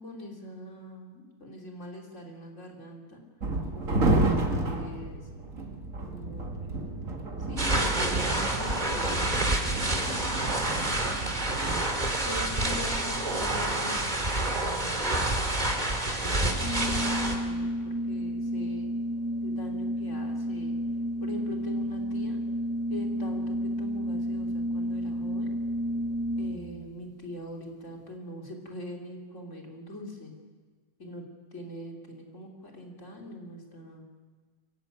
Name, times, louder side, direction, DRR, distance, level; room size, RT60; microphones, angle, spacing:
voice 1, 0.0-3.2 3.7-5.3 6.0-6.6 7.5-11.1 12.2-15.4 16.1-18.9 19.4-20.7 21.2-22.4 22.9-25.5 26.4-30.3 31.0-31.2 31.5-34.1, left 1 dB, 55° left, 1 dB, 3.8 m, -42 dB
sound 1, 3.4-11.8, right 2 dB, 60° right, 2.3 m, -31 dB
sound 2, 7.6-17.4, right 1 dB, 30° right, 2.6 m, -28 dB
Organ, 16.6-26.8, equal, 10° right, 1.4 m, -31 dB
25.0 x 14.5 x 9.3 m, 1.5 s
omnidirectional pair, 1.6 m